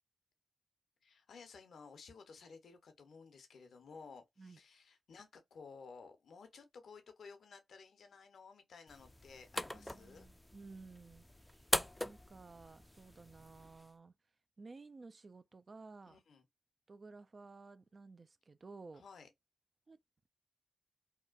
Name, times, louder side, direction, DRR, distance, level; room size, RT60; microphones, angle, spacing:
voice 1, 1.0-10.3 16.1-16.4 18.9-19.3, left 5 dB, 75° left, 0.7 m, -55 dB
sound 1, 8.9-13.9, left 1 dB, 15° left, 0.4 m, -42 dB
voice 2, 9.7-11.7 12.0-14.1 14.6-16.2 16.9-19.0 19.9-20.0, right 3 dB, 50° right, 0.4 m, -55 dB
2.9 x 2.2 x 2.4 m
supercardioid pair, 40°, 0 cm